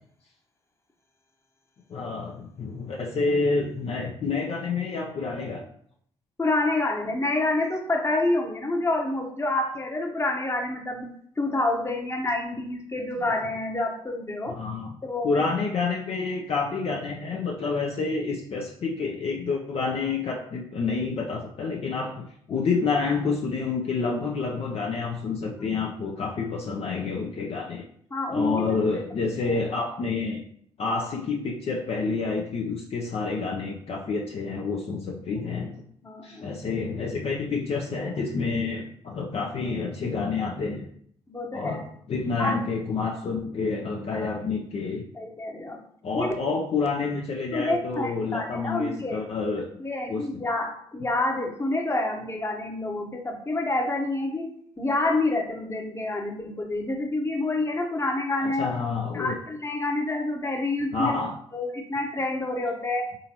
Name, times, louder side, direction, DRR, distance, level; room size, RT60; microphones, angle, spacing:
voice 1, 1.9-5.6 14.5-15.0 15.2-27.8 28.3-30.4 30.8-35.8 36.2-40.9 41.5-45.0 46.0-49.7 50.1-50.5 58.4-59.3 60.9-61.3, left 4 dB, 45° left, -1 dB, 0.6 m, -28 dB
voice 2, 6.4-11.0 11.4-14.6 15.0-15.4 28.1-28.8 29.5-29.6 35.4-35.5 36.0-36.5 41.3-41.8 42.4-42.5 44.1-44.4 45.1-45.8 46.2-46.3 47.5-49.2 49.8-54.5 54.8-58.7 59.1-61.2 61.5-63.1, left 2 dB, 20° left, 2 dB, 1.0 m, -28 dB
3.8 x 3.7 x 2.9 m, 0.65 s
hypercardioid pair, 45°, 14 cm